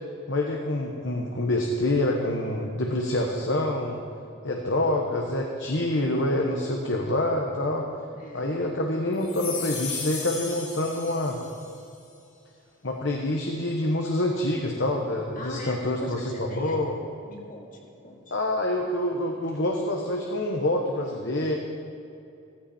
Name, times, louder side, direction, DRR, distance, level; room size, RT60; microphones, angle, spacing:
voice 1, 0.3-4.0 4.4-7.8 8.3-11.4 12.8-17.0 18.3-21.5, left 1 dB, 60° left, 1 dB, 1.1 m, -26 dB
voice 2, 4.4-4.7 8.1-8.6 15.4-16.9 17.2-18.3, left 1 dB, 40° left, -1 dB, 2.1 m, -41 dB
sound 1, 9.2-11.7, left 5 dB, 80° left, 4.0 m, -35 dB
16.0 x 14.5 x 4.4 m, 2.6 s
head